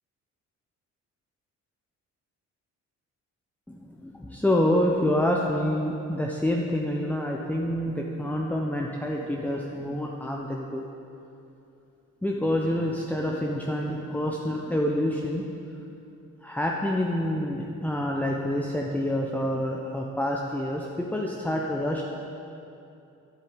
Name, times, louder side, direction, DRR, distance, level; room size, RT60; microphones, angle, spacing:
voice 1, 3.7-10.9 12.2-15.4 16.4-22.0, left 1 dB, 5° left, -1 dB, 1.0 m, -27 dB
10.5 x 8.1 x 9.0 m, 2.7 s
cardioid pair, 90°, 30 cm